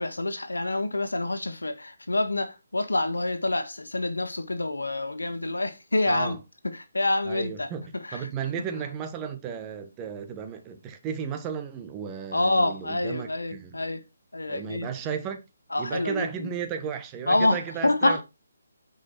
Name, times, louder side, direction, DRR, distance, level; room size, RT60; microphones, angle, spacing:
voice 1, 0.0-6.4 6.6-8.3 12.3-14.0 14.3-14.9 15.7-16.5 17.3-18.2, left 2 dB, 90° left, 1.6 m, -27 dB
voice 2, 6.0-6.4 7.3-13.8 14.5-15.4 15.8-18.2, right 7 dB, 20° right, 1.5 m, -34 dB
9.7 x 5.5 x 4.7 m
figure-of-eight pair, 150°, 0 cm